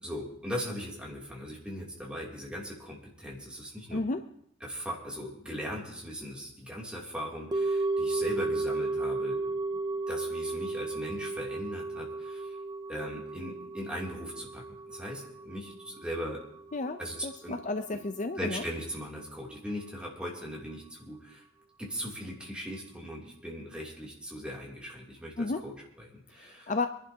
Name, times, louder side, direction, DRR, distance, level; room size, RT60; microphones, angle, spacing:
voice 1, 0.0-4.0 4.6-9.4 10.1-12.6 12.9-16.4 17.0-17.1 17.4-17.6 17.9-18.0 18.4-21.4 21.8-26.7, equal, 5° right, -4 dB, 2.7 m, -39 dB
voice 2, 3.9-4.2 16.7-18.6 25.4-25.6 26.4-26.9, left 3 dB, 40° left, 8 dB, 0.5 m, -32 dB
sound 1, 7.5-17.8 18.1-18.2, right 3 dB, 20° right, 0.4 m, -34 dB
26.0 x 11.5 x 2.8 m, 0.71 s
head